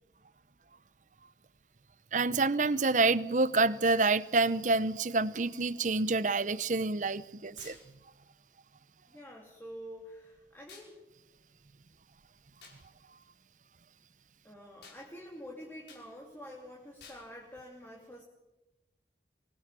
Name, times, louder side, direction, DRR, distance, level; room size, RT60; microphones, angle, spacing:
voice 1, 2.1-7.8, right 3 dB, 45° right, 17 dB, 0.8 m, -27 dB
sound 1, 7.6-7.9 10.7-10.9 12.6-12.8 14.8-15.0 15.9-16.1 17.0-17.3, left 5 dB, 70° left, 5.7 m, -52 dB
voice 2, 9.1-11.0 14.4-18.2, equal, 10° left, -2 dB, 2.8 m, -47 dB
24.0 x 19.0 x 7.5 m, 1.0 s
head